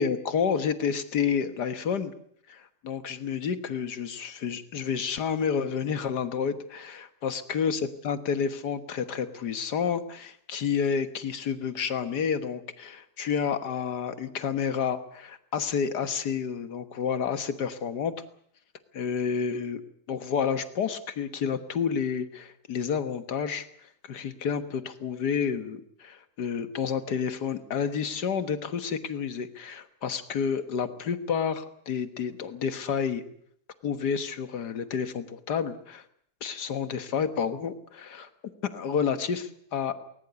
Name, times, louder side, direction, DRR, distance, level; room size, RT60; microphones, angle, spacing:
voice 1, 0.0-2.1 2.5-18.1 18.9-19.8 20.1-23.7 24.0-33.2 33.8-36.0 36.4-38.3 38.7-40.0, left 7 dB, 90° left, 10 dB, 2.0 m, -30 dB
20.0 x 19.5 x 8.2 m, 0.66 s
omnidirectional pair, 1.7 m